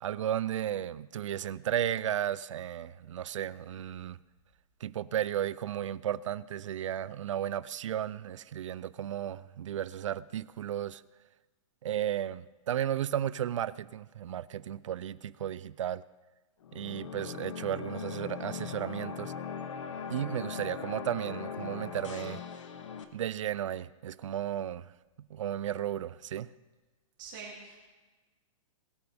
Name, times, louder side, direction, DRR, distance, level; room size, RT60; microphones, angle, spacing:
voice 1, 0.0-4.2 4.8-11.0 11.8-16.0 16.7-19.3 20.1-22.4 23.1-24.9 25.3-26.5, right 10 dB, 65° right, 0.5 m, -34 dB
sound 1, 16.6-23.0, left 7 dB, 65° left, 1.3 m, -40 dB
voice 2, 27.2-27.8, right 5 dB, 35° right, 3.1 m, -44 dB
20.5 x 9.6 x 3.5 m
hypercardioid pair, 170°, 17 cm